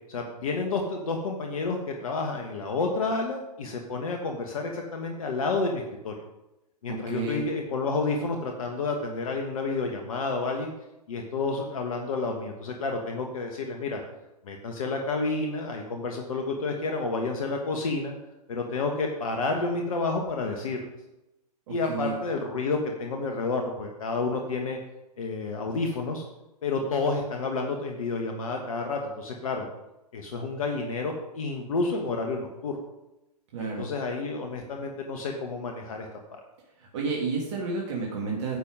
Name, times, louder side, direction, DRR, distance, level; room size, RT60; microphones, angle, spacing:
voice 1, 0.1-6.1 6.8-10.7 11.1-14.0 14.4-18.1 18.5-20.9 21.7-24.8 25.2-26.2 26.6-29.7 30.1-32.8 33.6-36.4, left 3 dB, 60° left, 2 dB, 1.6 m, -30 dB
voice 2, 6.9-7.4 21.7-22.1 33.5-33.9 36.8-38.6, right 4 dB, 45° right, -2 dB, 1.9 m, -31 dB
10.0 x 7.1 x 4.9 m, 0.94 s
figure-of-eight pair, 115°, 21 cm